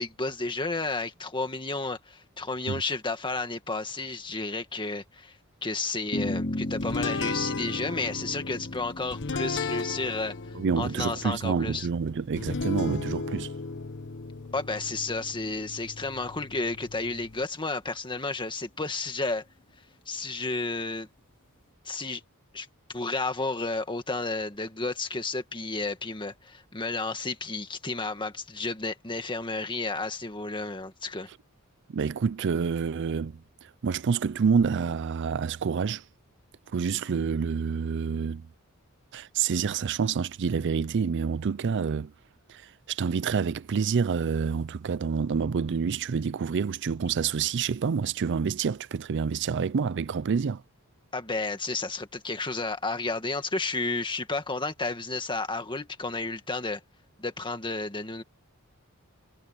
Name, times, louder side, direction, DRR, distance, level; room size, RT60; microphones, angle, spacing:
voice 1, 0.0-5.4 5.6-10.3 10.7-11.9 14.5-19.4 20.1-21.1 21.8-22.2 22.5-31.3 51.1-56.8 57.2-58.2, left 3 dB, 20° left, 1.9 m, -32 dB
sound 1, 6.1-12.7, left 1 dB, 40° left, 2.5 m, -36 dB
sound 2, 6.8-17.4, left 3 dB, 55° left, 1.0 m, -36 dB
voice 2, 10.5-13.5 31.9-36.0 36.7-38.4 39.1-42.1 42.5-50.6, right 6 dB, 55° right, 0.4 m, -28 dB
head